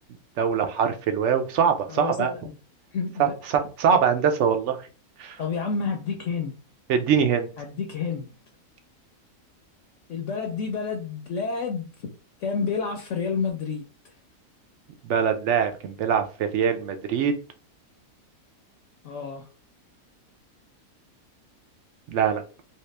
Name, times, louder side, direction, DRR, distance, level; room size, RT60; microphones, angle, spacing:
voice 1, 0.4-2.3 3.2-4.8 5.2-5.4 6.9-7.5 15.0-17.3 22.1-22.4, right 7 dB, 65° right, 7 dB, 0.7 m, -23 dB
voice 2, 1.9-2.5 2.9-3.3 5.4-6.5 7.6-8.3 10.1-11.9 12.4-13.8 19.0-19.4, left 5 dB, 65° left, 3 dB, 0.9 m, -29 dB
3.0 x 2.8 x 3.3 m, 0.35 s
omnidirectional pair, 1.5 m